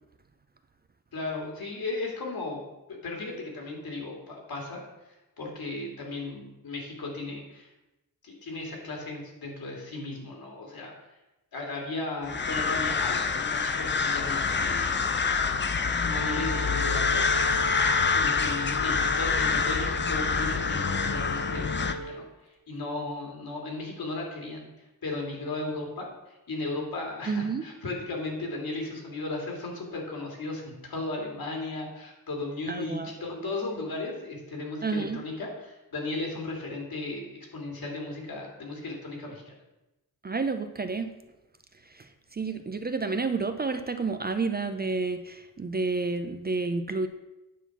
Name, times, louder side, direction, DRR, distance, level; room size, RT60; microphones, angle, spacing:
voice 1, 1.1-2.6 2.9-7.7 8.2-11.2 11.5-14.9 16.0-17.2 18.1-39.5, left 2 dB, 75° left, 0 dB, 2.4 m, -36 dB
sound 1, 12.2-21.9, left 5 dB, 30° left, 0.5 m, -26 dB
Wind instrument woodwind instrument, 16.0-22.3, equal, 70° right, 1.5 m, -38 dB
voice 2, 27.3-27.6 32.7-33.1 33.4-33.5 34.8-35.2 40.2-41.1 41.8-47.1, right 4 dB, 25° right, 9 dB, 0.4 m, -30 dB
9.2 x 4.2 x 7.0 m, 0.98 s
wide cardioid pair, 145°, 36 cm